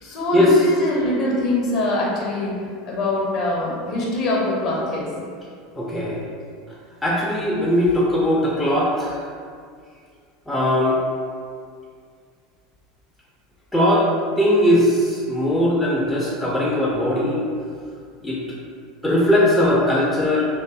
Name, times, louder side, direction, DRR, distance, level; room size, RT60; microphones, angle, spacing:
voice 1, 0.0-2.6 2.8-5.1, left 1 dB, 50° left, -3 dB, 0.6 m, -23 dB
voice 2, 5.8-6.2 7.0-9.2 10.5-11.0 13.7-14.1 14.4-17.4 18.2-18.4 19.0-20.5, left 1 dB, 10° left, -5 dB, 0.4 m, -19 dB
2.5 x 2.3 x 2.3 m, 2.1 s
figure-of-eight pair, 75°, 0 cm